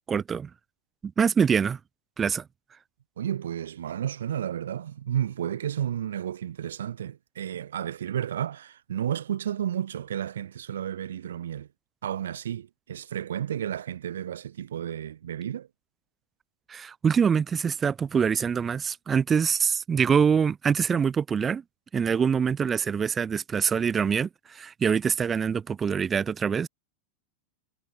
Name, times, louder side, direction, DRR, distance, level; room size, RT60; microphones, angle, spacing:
voice 1, 0.1-0.5 1.0-1.8 2.2-2.4 16.7-21.6 21.9-26.7, right 6 dB, 25° right, 1.5 m, -24 dB
voice 2, 3.2-11.7 12.0-15.7, right 10 dB, 80° right, 1.4 m, -32 dB
hypercardioid pair, 100°, 0 cm